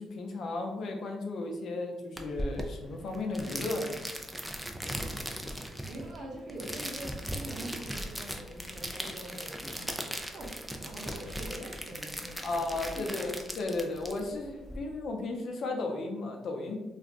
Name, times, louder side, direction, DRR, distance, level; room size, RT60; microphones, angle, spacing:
voice 1, 0.0-4.0 12.4-16.8, left 2 dB, 60° left, 2 dB, 0.6 m, -34 dB
sound 1, 2.2-14.8, equal, 5° right, 0.4 m, -38 dB
voice 2, 5.8-9.9 10.2-13.3, right 1 dB, 65° right, -4 dB, 0.9 m, -44 dB
2.4 x 2.2 x 3.6 m, 1.0 s
cardioid pair, 90°, 0 cm